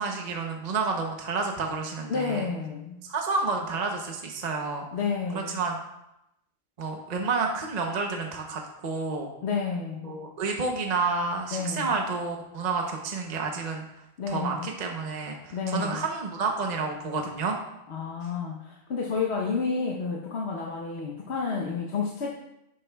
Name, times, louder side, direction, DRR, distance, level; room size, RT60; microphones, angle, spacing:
voice 1, 0.0-2.4 3.0-4.9 5.3-5.8 6.8-9.3 10.0-13.8 14.3-17.6 18.2-18.3, right 4 dB, 45° right, 2 dB, 0.9 m, -30 dB
voice 2, 2.1-3.0 4.9-5.6 9.4-10.2 11.5-11.9 14.2-14.7 15.5-16.0 17.9-22.3, left 5 dB, 75° left, -1 dB, 1.2 m, -30 dB
11.0 x 8.3 x 2.3 m, 0.87 s
omnidirectional pair, 1.1 m